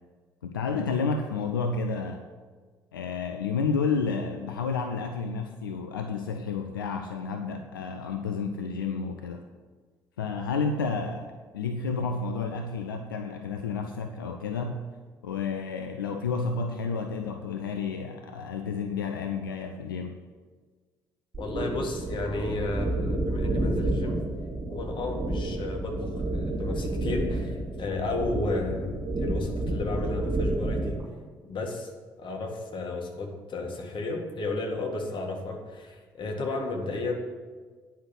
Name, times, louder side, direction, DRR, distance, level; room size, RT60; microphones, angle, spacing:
voice 1, 0.4-2.2 2.9-9.4 10.2-11.3 11.5-14.8 15.2-20.2, left 5 dB, 85° left, 6 dB, 0.4 m, -30 dB
sound 1, 21.3-31.0, right 1 dB, 30° right, 3.7 m, -30 dB
voice 2, 21.4-24.2 24.7-31.0 31.4-31.9 32.2-37.1, left 2 dB, 45° left, 1 dB, 2.0 m, -33 dB
9.6 x 5.7 x 7.7 m, 1.5 s
hypercardioid pair, 45°, 11 cm